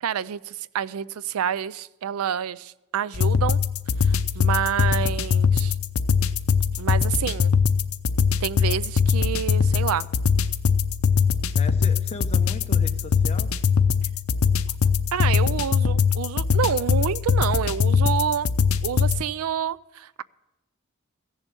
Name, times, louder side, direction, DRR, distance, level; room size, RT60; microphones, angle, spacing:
voice 1, 0.0-3.6 4.0-5.7 6.8-7.5 8.4-10.1 15.1-18.5 18.8-20.2, right 8 dB, 80° right, 19 dB, 0.4 m, -28 dB
sound 1, 3.1-19.2, left 6 dB, 80° left, 0.6 m, -22 dB
voice 2, 11.5-13.6, left 2 dB, 30° left, 6 dB, 0.9 m, -38 dB
15.5 x 7.2 x 6.9 m, 1.0 s
head